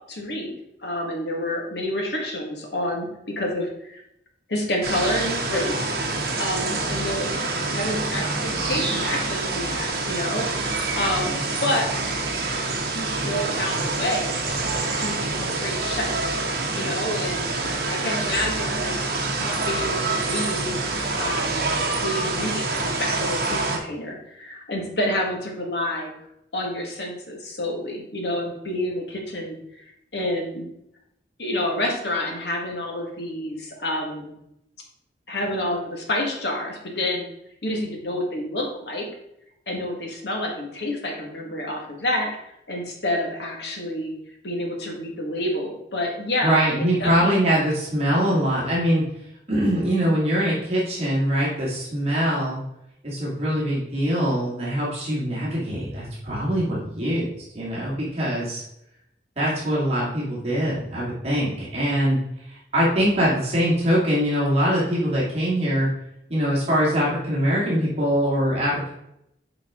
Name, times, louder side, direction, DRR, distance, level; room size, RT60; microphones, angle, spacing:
voice 1, 0.1-0.5 0.8-4.0 4.5-7.3 7.7-11.9 12.9-14.4 15.0-16.3 16.7-19.0 19.4-21.7 22.0-26.1 26.5-29.8 30.1-30.7 31.4-34.3 35.3-37.3 37.6-39.1 39.7-44.1 44.4-47.4, left 1 dB, 75° left, 1 dB, 1.8 m, -29 dB
sound 1, 4.8-23.8, right 3 dB, 60° right, 1.3 m, -26 dB
voice 2, 46.4-49.0 49.5-52.6 53.0-57.3 57.5-58.6 59.4-62.2 62.5-65.9 66.3-68.9, equal, 35° right, -6 dB, 2.4 m, -23 dB
8.4 x 4.9 x 3.7 m, 0.80 s
head